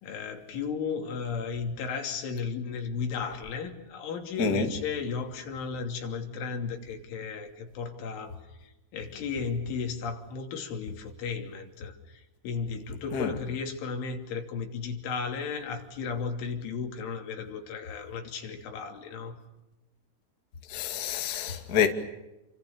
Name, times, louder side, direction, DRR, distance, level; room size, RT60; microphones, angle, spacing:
voice 1, 0.0-19.4, left 5 dB, 80° left, 5.3 m, -35 dB
voice 2, 4.4-4.7 13.1-13.3 20.7-21.9, left 7 dB, 35° left, 1.5 m, -27 dB
29.0 x 26.5 x 7.0 m
omnidirectional pair, 5.5 m